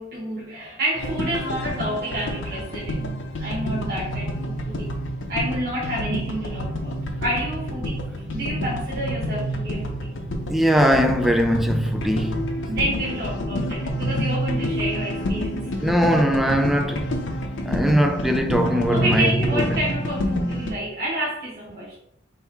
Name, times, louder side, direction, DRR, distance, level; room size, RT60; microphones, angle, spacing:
voice 1, 0.0-4.9 5.3-8.0 8.3-10.1 12.7-15.7 18.9-22.0, right 1 dB, 55° right, 1.2 m, -29 dB
sound 1, 1.0-20.7, equal, 85° left, 0.7 m, -28 dB
voice 2, 10.5-12.5 15.8-17.2 17.6-19.8, equal, ahead, 0.4 m, -21 dB
3.6 x 3.2 x 4.5 m
head